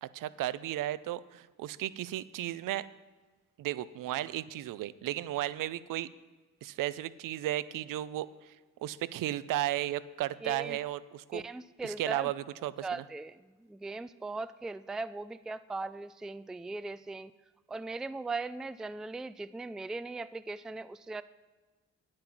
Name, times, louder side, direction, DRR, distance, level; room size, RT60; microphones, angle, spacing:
voice 1, 0.0-2.8 3.6-6.1 6.6-8.5 8.8-11.4 11.8-12.8, right 14 dB, 85° right, 17 dB, 0.5 m, -34 dB
voice 2, 10.4-10.8 11.3-12.3 12.8-17.3 17.7-21.2, right 3 dB, ahead, 14 dB, 0.3 m, -39 dB
9.2 x 8.9 x 6.0 m, 1.2 s
supercardioid pair, 55°, 32 cm